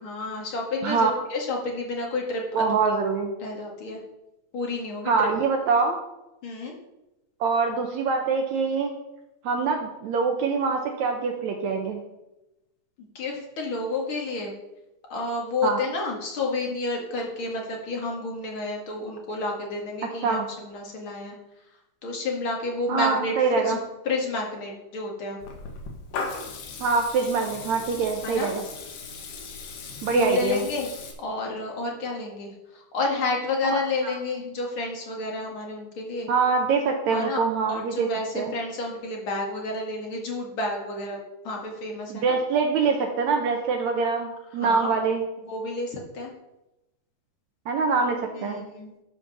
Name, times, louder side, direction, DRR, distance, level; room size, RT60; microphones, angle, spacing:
voice 1, 0.0-2.7 3.4-4.0 4.5-5.3 6.4-6.7 13.1-14.5 15.1-21.4 22.0-25.4 28.2-28.5 30.1-30.9 31.2-36.3 37.1-41.2 41.4-42.3 44.6-44.9 45.4-46.3 48.3-49.0, left 3 dB, 45° left, 0 dB, 2.4 m, -30 dB
voice 2, 2.5-3.3 5.1-6.0 7.4-8.9 9.4-12.0 15.6-15.8 20.2-20.5 22.9-23.8 26.8-28.6 30.0-30.6 33.6-34.2 36.3-38.1 38.4-38.5 42.1-45.2 47.7-48.6, right 5 dB, 70° right, 3 dB, 2.0 m, -24 dB
Water tap faucet / Liquid, 25.4-31.1, left 4 dB, 85° left, 3.1 m, -38 dB
11.0 x 5.0 x 6.7 m, 0.95 s
omnidirectional pair, 3.6 m